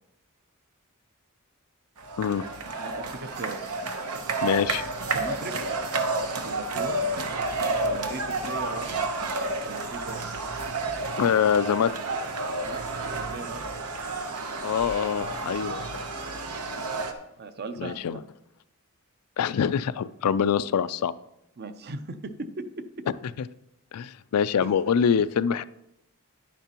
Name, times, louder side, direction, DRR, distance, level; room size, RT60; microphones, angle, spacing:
sound 1, 2.0-17.1, right 2 dB, 85° right, 1.0 m, -31 dB
voice 1, 2.8-3.6 5.1-5.7 6.4-7.0 7.8-9.0 9.6-10.3 12.7-13.6 16.7-17.0 17.4-18.2 21.6-22.6 24.6-24.7, right 3 dB, 45° right, 10 dB, 0.6 m, -38 dB
voice 2, 4.4-4.8 11.2-11.9 14.6-15.8 17.8-18.2 19.4-21.1 23.9-25.6, left 7 dB, 90° left, 15 dB, 0.4 m, -24 dB
10.5 x 10.0 x 2.9 m, 0.85 s
head